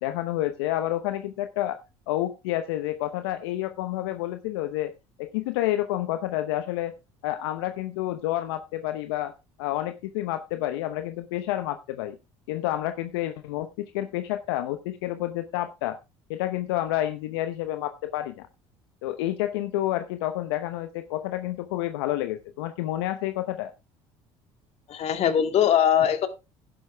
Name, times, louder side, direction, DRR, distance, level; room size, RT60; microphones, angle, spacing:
voice 1, 0.0-1.8 2.1-4.9 5.2-6.9 7.2-9.3 9.6-12.2 12.5-16.0 16.3-18.5 19.0-23.7, left 14 dB, 85° left, 10 dB, 0.8 m, -29 dB
voice 2, 24.9-26.3, left 9 dB, 55° left, 9 dB, 2.1 m, -21 dB
11.0 x 11.0 x 3.4 m, 0.26 s
supercardioid pair, 75°, 13 cm